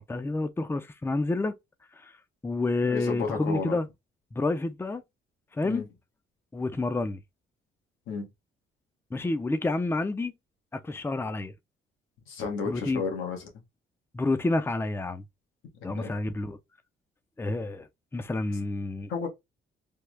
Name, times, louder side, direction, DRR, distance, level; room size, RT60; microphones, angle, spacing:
voice 1, 0.0-1.6 2.0-2.1 2.4-3.9 4.3-5.0 5.5-5.8 6.5-7.2 9.1-10.3 10.7-11.5 12.7-13.0 14.1-15.2 15.8-16.6 17.4-19.1, left 2 dB, 10° left, 0.5 m, -29 dB
voice 2, 2.8-3.8 5.6-5.9 8.1-8.3 12.3-13.5 15.8-16.1 19.1-19.3, left 5 dB, 90° left, 1.3 m, -32 dB
3.5 x 2.4 x 3.1 m
cardioid pair, 90°, 20 cm